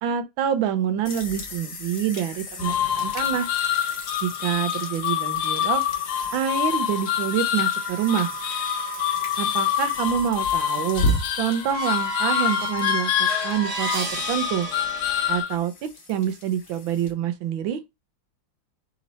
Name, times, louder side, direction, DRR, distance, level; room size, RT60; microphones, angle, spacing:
voice 1, 0.0-3.5 4.2-5.8 6.3-8.3 9.4-11.0 11.4-14.7 15.3-17.8, right 9 dB, 85° right, 1.4 m, -26 dB
sound 1, 1.0-17.1, left 1 dB, 50° left, 1.2 m, -35 dB
sound 2, 2.6-15.6, left 10 dB, 70° left, 1.0 m, -26 dB
sound 3, 7.7-15.4, equal, 45° right, 1.3 m, -32 dB
4.2 x 2.9 x 4.0 m
omnidirectional pair, 2.1 m